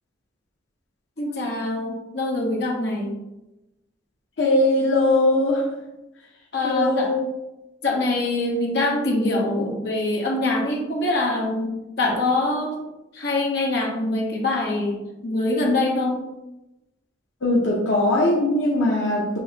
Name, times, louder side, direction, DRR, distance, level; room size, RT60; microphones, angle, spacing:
voice 1, 1.2-3.1 6.5-7.1 7.8-12.8 13.1-16.2, left 2 dB, 60° left, -2 dB, 1.1 m, -24 dB
voice 2, 4.4-5.6 6.6-7.2 17.4-19.4, left 1 dB, 90° left, -3 dB, 0.8 m, -20 dB
6.9 x 2.8 x 2.8 m, 0.96 s
head